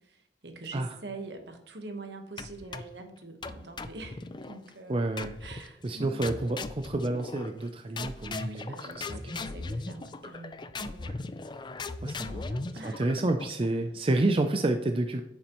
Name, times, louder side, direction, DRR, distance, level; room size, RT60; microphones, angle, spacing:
voice 1, 0.0-5.0 5.4-6.5 8.2-11.1 12.2-13.3, right 3 dB, 70° right, 5 dB, 1.3 m, -45 dB
sound 1, 2.4-3.0 3.4-4.6 5.2-5.7 6.2-7.7 8.0-13.7, left 3 dB, 25° left, 0.4 m, -38 dB
voice 2, 4.9-5.3 5.8-9.4 11.0-11.2 12.0-12.4 12.8-15.2, right 2 dB, 30° right, 6 dB, 0.5 m, -29 dB
9.6 x 7.2 x 3.0 m, 0.80 s
head